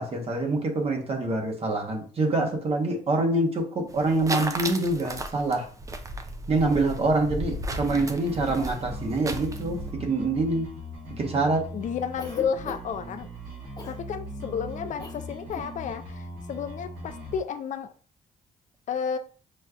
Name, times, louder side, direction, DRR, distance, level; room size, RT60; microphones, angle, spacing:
voice 1, 0.0-5.7 6.5-10.7 11.2-11.7, right 2 dB, 45° right, 2 dB, 1.0 m, -25 dB
sound 1, 3.9-9.9, right 1 dB, 20° right, 0.4 m, -35 dB
sound 2, 7.8-17.4, equal, 85° right, 1.9 m, -40 dB
voice 2, 11.7-13.3 13.9-17.9 18.9-19.2, left 7 dB, 60° left, 9 dB, 0.4 m, -31 dB
Cough, 12.2-13.0 13.8-14.0 15.0-15.2 15.5-15.7, left 3 dB, 25° left, 1.1 m, -40 dB
5.2 x 2.3 x 2.3 m, 0.40 s
cardioid pair, 90°, 15 cm